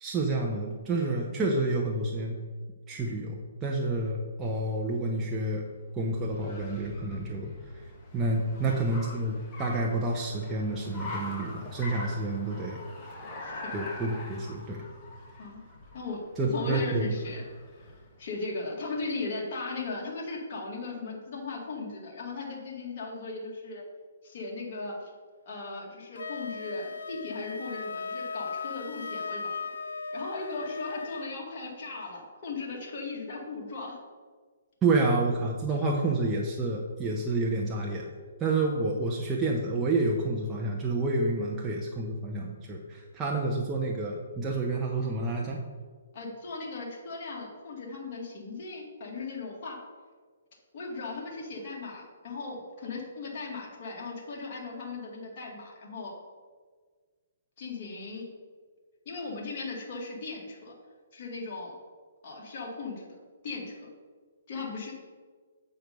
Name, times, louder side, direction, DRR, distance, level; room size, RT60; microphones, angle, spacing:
voice 1, 0.0-2.4 2.9-5.6 6.0-7.5 8.1-12.8 13.7-14.8 16.4-17.0 34.8-38.1 38.4-45.6, right 2 dB, 15° right, -2 dB, 0.8 m, -29 dB
Car, 5.3-18.2, left 2 dB, 20° left, 1.4 m, -43 dB
voice 2, 13.4-13.8 15.4-15.6 15.9-16.2 16.5-17.4 18.2-23.8 24.2-25.1 25.5-29.7 30.1-34.0 46.1-49.8 50.7-56.1 57.6-58.3 59.1-60.7 61.1-61.7 62.2-63.1 63.4-63.9 64.5-64.9, left 3 dB, 45° left, -2 dB, 2.2 m, -37 dB
Wind instrument woodwind instrument, 26.2-31.3, left 4 dB, 85° left, 0.4 m, -37 dB
8.0 x 4.6 x 5.4 m, 1.5 s
hypercardioid pair, 155°, 0 cm